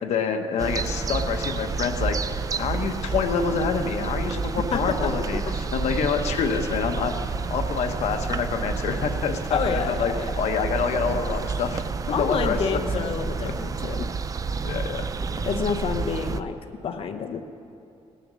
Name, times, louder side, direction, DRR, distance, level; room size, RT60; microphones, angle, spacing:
voice 1, 0.0-12.6 12.9-13.0 13.4-13.5 14.6-15.1 15.4-15.5, left 6 dB, 80° left, 5 dB, 1.0 m, -27 dB
sound 1, 0.6-16.4, right 4 dB, 30° right, 0.4 m, -29 dB
voice 2, 4.7-5.4 9.5-10.3 12.1-14.1 15.5-16.6 16.8-17.4, left 6 dB, 55° left, 6 dB, 0.7 m, -28 dB
18.5 x 7.0 x 6.2 m, 2.6 s
cardioid pair, 115°, 11 cm